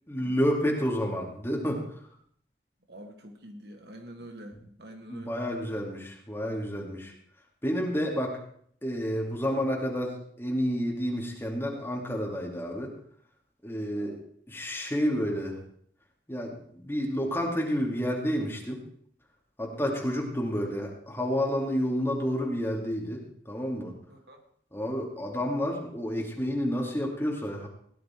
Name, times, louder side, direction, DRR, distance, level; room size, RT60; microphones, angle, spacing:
voice 1, 0.1-1.8 4.5-4.6 5.1-7.1 7.6-8.4 8.8-12.9 13.6-14.1 14.5-15.6 16.3-18.8 19.6-23.9 24.7-27.7, equal, 15° left, -1 dB, 2.6 m, -30 dB
voice 2, 2.9-5.3 13.9-14.2 19.7-19.8 24.1-24.4, right 1 dB, 65° right, 4 dB, 1.8 m, -46 dB
17.5 x 10.5 x 4.6 m, 0.63 s
head